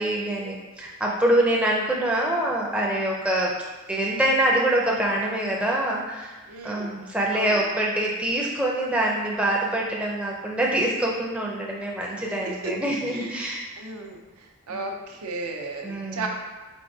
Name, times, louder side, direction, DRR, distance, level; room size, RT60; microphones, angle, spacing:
voice 1, 0.0-3.5 3.9-6.4 6.6-13.6 14.7-14.8 15.8-16.3, right 1 dB, 5° right, -3 dB, 0.4 m, -25 dB
voice 2, 6.5-6.9 7.3-7.6 12.6-12.7 13.1-13.4 13.8-14.2 14.7-16.3, right 3 dB, 80° right, 1 dB, 0.6 m, -34 dB
4.4 x 4.1 x 2.7 m, 1.2 s
head